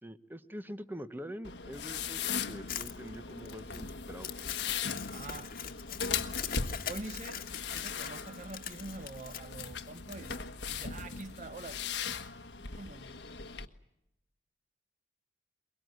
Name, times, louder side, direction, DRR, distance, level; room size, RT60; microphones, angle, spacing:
voice 1, 0.0-4.3, equal, 10° right, 1.0 m, -44 dB
sound 1, 1.4-13.7, left 6 dB, 65° left, 1.4 m, -39 dB
Crumpling crinkling, 2.7-10.4, left 9 dB, 50° left, 1.6 m, -42 dB
voice 2, 5.1-5.5 6.8-12.0 12.7-13.2, right 2 dB, 40° right, 0.9 m, -45 dB
23.0 x 22.5 x 9.4 m
head